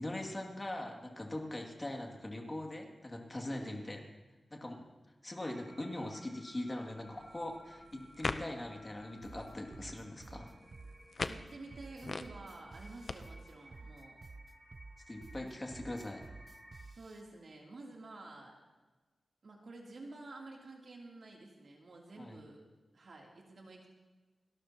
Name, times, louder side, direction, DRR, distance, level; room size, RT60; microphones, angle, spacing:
voice 1, 0.0-4.0 4.5-4.9 5.2-10.5 15.1-16.3 22.2-22.4, left 1 dB, 25° left, 1 dB, 2.4 m, -41 dB
voice 2, 3.5-3.9 11.3-14.2 16.9-18.5 19.4-22.6 22.9-23.9, right 2 dB, 65° right, -1 dB, 3.0 m, -50 dB
sound 1, 5.4-16.8, equal, 15° right, 6.4 m, -59 dB
sound 2, 7.0-13.1, left 3 dB, 55° left, 0.6 m, -44 dB
sound 3, 9.2-17.2, right 3 dB, 45° right, 0.5 m, -52 dB
29.0 x 12.5 x 2.9 m, 1.2 s
wide cardioid pair, 80°, 0 cm